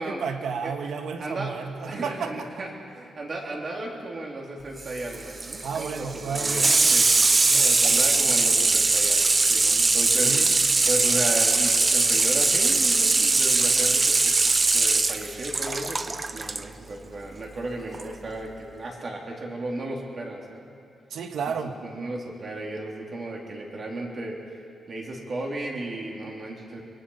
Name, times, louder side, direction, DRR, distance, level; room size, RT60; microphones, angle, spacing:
voice 1, 0.0-2.3 5.6-6.7 7.4-7.8 10.2-10.5 21.1-21.7, right 6 dB, 70° right, 6 dB, 1.5 m, -32 dB
voice 2, 1.2-1.5 1.9-7.1 7.5-10.4 10.9-20.7 21.5-24.4 24.9-26.8, right 2 dB, 40° right, -1 dB, 3.4 m, -35 dB
Water tap faucet / Sink (filling or washing), 4.8-16.6 17.9-18.0, right 3 dB, 20° right, 0.6 m, -21 dB
24.5 x 23.0 x 5.7 m, 2.5 s
wide cardioid pair, 160°, 0 cm